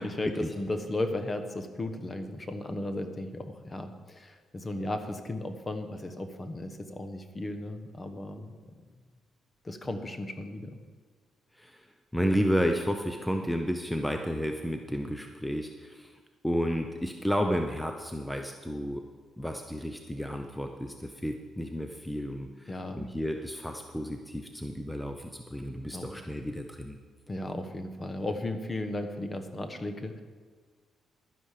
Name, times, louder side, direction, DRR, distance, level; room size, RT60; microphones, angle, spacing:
voice 1, 0.0-8.7 9.6-10.8 22.7-23.1 25.9-26.2 27.3-30.2, left 2 dB, 25° left, 8 dB, 1.2 m, -35 dB
voice 2, 11.5-11.9 12.1-16.2 16.4-19.0 19.4-27.0, equal, 5° left, 5 dB, 0.8 m, -32 dB
11.5 x 10.0 x 5.0 m, 1.5 s
cardioid pair, 90°, 0 cm